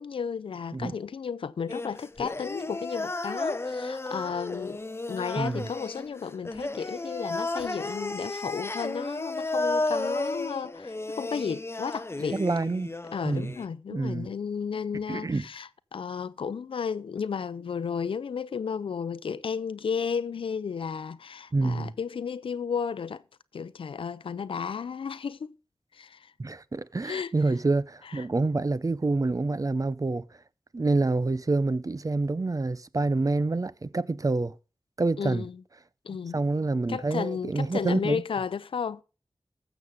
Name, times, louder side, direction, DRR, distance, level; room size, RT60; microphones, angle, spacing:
voice 1, 0.0-4.8 5.1-12.4 13.1-23.2 23.5-25.5 25.9-26.3 27.0-27.3 28.0-28.3 35.2-35.6 36.0-36.4 36.9-39.0, left 6 dB, 90° left, 0.5 m, -33 dB
sound 1, 1.7-13.7, left 2 dB, 30° left, 0.7 m, -33 dB
voice 2, 5.4-5.7 12.3-12.9 13.2-13.6 13.9-14.3 15.1-15.4 21.5-21.9 26.4-30.2 30.7-34.5 35.0-35.4 36.3-38.2, right 3 dB, 40° right, 0.7 m, -27 dB
15.0 x 7.1 x 3.5 m
cardioid pair, 40°, 9 cm